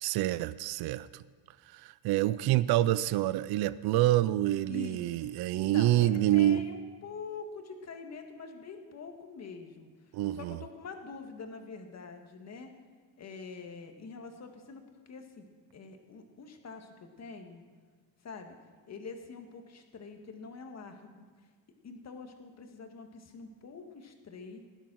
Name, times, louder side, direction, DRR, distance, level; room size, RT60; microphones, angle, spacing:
voice 1, 0.0-1.2 1.7-6.6 10.1-10.6, right 14 dB, 60° right, 17 dB, 0.5 m, -27 dB
voice 2, 4.7-9.9 10.3-12.7 13.2-14.8 15.1-15.5 15.7-17.6 18.2-18.6 18.9-21.2 21.8-24.7, left 4 dB, 35° left, 5 dB, 1.9 m, -45 dB
16.5 x 12.0 x 6.3 m, 1.5 s
cardioid pair, 140°, 44 cm